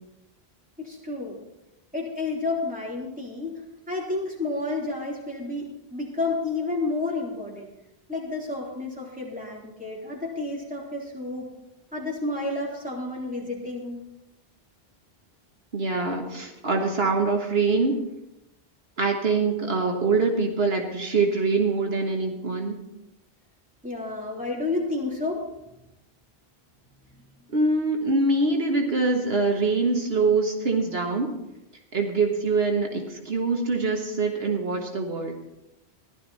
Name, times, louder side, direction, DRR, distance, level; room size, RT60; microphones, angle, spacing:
voice 1, 0.8-1.4 1.9-3.6 3.9-7.7 8.1-11.5 11.9-14.0 23.8-25.4, left 3 dB, 5° right, -4 dB, 3.3 m, -30 dB
voice 2, 15.7-18.0 19.0-22.8 27.5-31.3 31.9-35.4, right 3 dB, 75° right, 2 dB, 1.7 m, -24 dB
15.0 x 12.0 x 4.2 m, 0.92 s
omnidirectional pair, 1.1 m